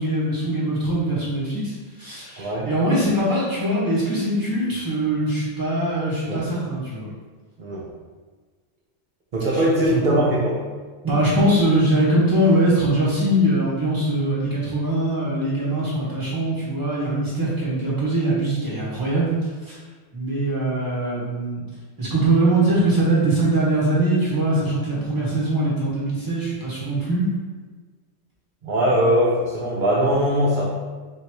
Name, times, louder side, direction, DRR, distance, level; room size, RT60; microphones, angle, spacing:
voice 1, 0.0-1.7 2.0-7.1 9.5-9.6 9.9-10.2 11.0-19.3 19.6-19.8 20.1-21.6 22.0-27.3, right 1 dB, 15° right, -8 dB, 1.4 m, -22 dB
voice 2, 2.4-2.7 6.3-6.4 7.6-7.8 9.3-10.6 28.6-30.6, equal, 45° right, -6 dB, 0.7 m, -20 dB
5.4 x 2.6 x 3.1 m, 1.4 s
omnidirectional pair, 1.3 m